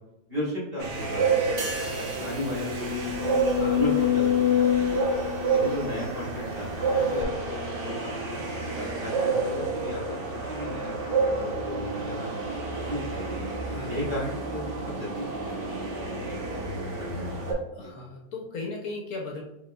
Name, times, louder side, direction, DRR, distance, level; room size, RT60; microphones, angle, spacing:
voice 1, 0.3-1.5 1.8-3.4 3.7-5.0 5.5-8.4 8.7-13.5 13.9-16.0 16.3-16.4 17.0-17.3 17.8-17.9, left 1 dB, 35° right, -6 dB, 1.5 m, -35 dB
sound 1, 0.8-17.5, right 3 dB, 90° right, 1.7 m, -30 dB
sound 2, 1.2-1.3 1.7-1.8 2.3-6.5 7.2-7.3, left 11 dB, 90° left, 0.6 m, -26 dB
sound 3, 1.6-5.1 5.5-5.7, right 4 dB, 65° right, 0.6 m, -43 dB
voice 2, 13.6-14.1 17.7-19.4, left 3 dB, 65° left, 1 dB, 1.0 m, -37 dB
5.0 x 3.6 x 2.2 m, 0.98 s
omnidirectional pair, 1.8 m